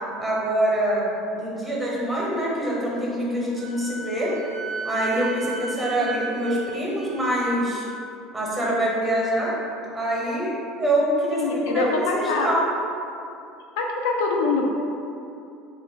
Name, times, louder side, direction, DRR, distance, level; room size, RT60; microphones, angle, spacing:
voice 1, 0.2-4.3 4.8-7.8 8.3-9.6 9.9-12.7, right 1 dB, 15° right, -4 dB, 0.9 m, -25 dB
Wind instrument woodwind instrument, 3.6-8.0, right 4 dB, 50° right, 0.3 m, -36 dB
voice 2, 11.3-12.5 13.8-14.6, left 3 dB, 85° left, 0 dB, 0.4 m, -24 dB
3.2 x 2.4 x 3.7 m, 2.7 s
supercardioid pair, 110°, 0 cm